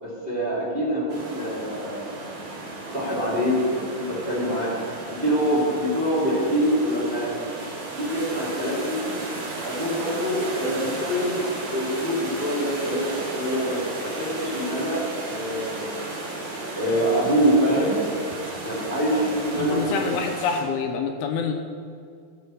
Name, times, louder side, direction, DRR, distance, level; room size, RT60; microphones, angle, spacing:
voice 1, 0.0-2.3 2.9-4.7 5.2-7.3 8.0-9.2 9.6-11.4 11.7-13.1 13.3-15.9 16.7-18.0 18.6-20.1, equal, 15° right, -6 dB, 2.0 m, -25 dB
sound 1, 1.1-20.6, right 2 dB, 55° right, 4.7 m, -34 dB
voice 2, 19.6-21.5, left 6 dB, 80° left, 4 dB, 2.6 m, -27 dB
14.0 x 6.9 x 6.1 m, 2.2 s
omnidirectional pair, 4.9 m